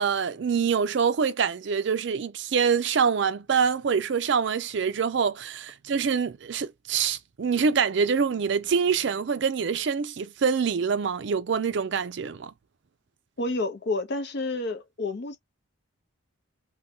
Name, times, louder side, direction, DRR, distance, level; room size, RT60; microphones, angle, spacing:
voice 1, 0.0-12.5, right 6 dB, 55° right, 0.4 m, -25 dB
voice 2, 13.4-15.4, left 2 dB, 55° left, 0.6 m, -29 dB
2.7 x 2.2 x 3.5 m
head